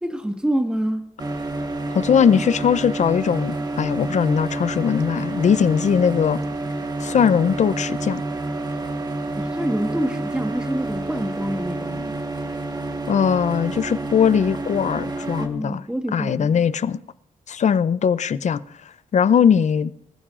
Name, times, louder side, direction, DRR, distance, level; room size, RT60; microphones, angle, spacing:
voice 1, 0.0-1.0 9.4-12.1 15.4-16.6, right 1 dB, 5° right, 1.6 m, -26 dB
sound 1, 1.2-15.5, right 2 dB, 30° right, 1.4 m, -29 dB
voice 2, 1.9-6.4 7.0-8.2 13.1-15.8 16.1-17.0 17.5-18.6 19.1-19.9, left 7 dB, 55° left, 0.6 m, -20 dB
26.0 x 15.0 x 2.5 m
cardioid pair, 100°, 15 cm